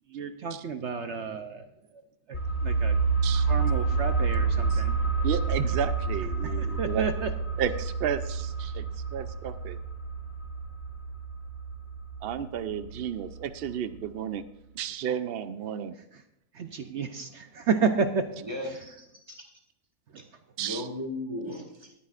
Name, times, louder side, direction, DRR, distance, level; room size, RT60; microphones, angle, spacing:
voice 1, 0.1-2.0 2.3-3.0 3.3-5.0 6.4-7.3 15.9-16.2 16.5-18.8 20.1-20.3, right 5 dB, 55° right, 8 dB, 0.8 m, -31 dB
sound 1, 2.3-13.7 14.0-14.1, right 4 dB, 45° left, 1.4 m, -29 dB
voice 2, 5.2-7.0 7.6-9.8 12.2-14.4 14.8-15.9 20.6-20.8, right 8 dB, 85° right, 12 dB, 0.5 m, -32 dB
voice 3, 18.4-19.4 20.6-21.9, left 1 dB, 15° right, 1 dB, 2.1 m, -36 dB
20.0 x 9.9 x 2.5 m, 0.85 s
omnidirectional pair, 1.7 m